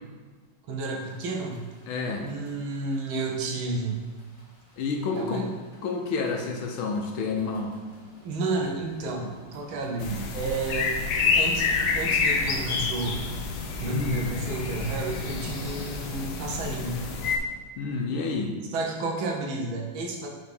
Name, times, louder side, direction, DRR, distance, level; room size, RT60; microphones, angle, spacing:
voice 1, 0.7-1.6 2.2-4.0 5.1-5.4 8.2-11.0 11.3-13.2 13.8-17.0 18.7-20.3, right 3 dB, 85° right, 0 dB, 1.8 m, -31 dB
sound 1, 0.9-17.3, equal, 35° left, 1.9 m, -50 dB
voice 2, 1.9-2.3 4.8-5.5 5.8-7.8 13.8-14.3 17.8-18.6, left 4 dB, 85° left, 2 dB, 1.7 m, -29 dB
sound 2, 10.0-17.4, left 5 dB, 65° left, 1.2 m, -28 dB
5.2 x 4.7 x 5.4 m, 1.4 s
omnidirectional pair, 2.2 m